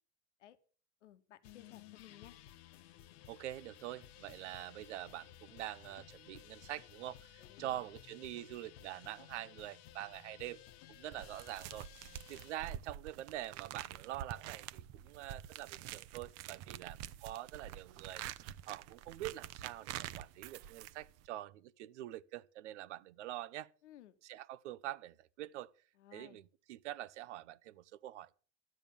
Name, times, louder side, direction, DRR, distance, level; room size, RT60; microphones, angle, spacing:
voice 1, 1.0-2.4 7.4-7.8 23.8-24.2 26.0-26.4, left 13 dB, 85° left, 1.2 m, -58 dB
sound 1, 1.4-12.5, left 12 dB, 60° left, 1.1 m, -57 dB
voice 2, 3.3-10.6 10.9-11.9 12.3-18.3 18.7-23.7 24.2-25.7 26.1-28.3, right 14 dB, 80° right, 0.8 m, -45 dB
sound 2, 11.1-21.3, right 12 dB, 45° right, 0.7 m, -47 dB
13.0 x 8.9 x 6.9 m
supercardioid pair, 120°, 35 cm